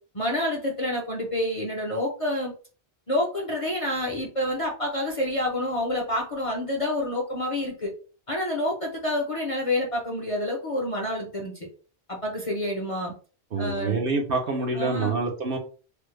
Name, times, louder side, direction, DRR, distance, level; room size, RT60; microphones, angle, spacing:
voice 1, 0.1-2.5 3.1-7.9 8.3-11.7 12.1-13.1 13.6-14.0 14.7-15.1, left 1 dB, 40° left, -1 dB, 0.6 m, -28 dB
voice 2, 13.5-15.6, right 3 dB, 60° right, 2 dB, 0.9 m, -26 dB
3.3 x 2.1 x 3.1 m, 0.38 s
omnidirectional pair, 1.1 m